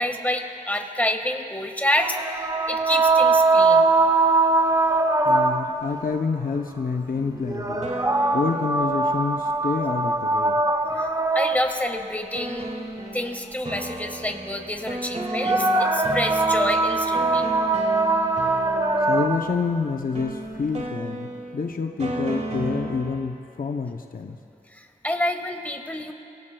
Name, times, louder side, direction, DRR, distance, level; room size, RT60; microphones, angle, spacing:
voice 1, 0.0-3.9 10.9-11.1 11.3-12.6 13.1-17.5 24.7-26.1, left 1 dB, 10° left, 4 dB, 1.6 m, -28 dB
sound 1, 2.0-5.9 7.5-12.0 15.2-19.6, right 3 dB, 25° right, 0.8 m, -21 dB
voice 2, 5.3-7.9 8.3-10.6 19.1-24.4, left 4 dB, 70° left, 4 dB, 0.7 m, -28 dB
sound 2, 7.1-10.1 12.3-23.4, right 1 dB, 50° right, 1.6 m, -35 dB
29.5 x 18.0 x 2.3 m, 2.9 s
wide cardioid pair, 50°, 15 cm